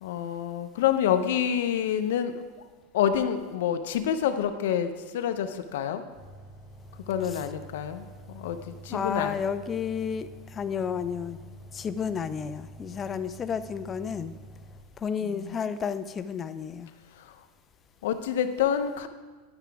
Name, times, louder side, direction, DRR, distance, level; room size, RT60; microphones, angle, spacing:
voice 1, 0.0-2.3 2.9-6.0 7.1-9.4 15.2-15.6 17.2-17.4 18.0-19.1, left 9 dB, 80° left, 9 dB, 0.6 m, -28 dB
sound 1, 6.2-14.8, right 1 dB, 10° right, 1.1 m, -47 dB
voice 2, 8.9-11.4 11.7-14.3 15.0-16.9, left 7 dB, 20° left, 12 dB, 0.3 m, -31 dB
10.5 x 5.9 x 3.4 m, 1.3 s
supercardioid pair, 145°, 0 cm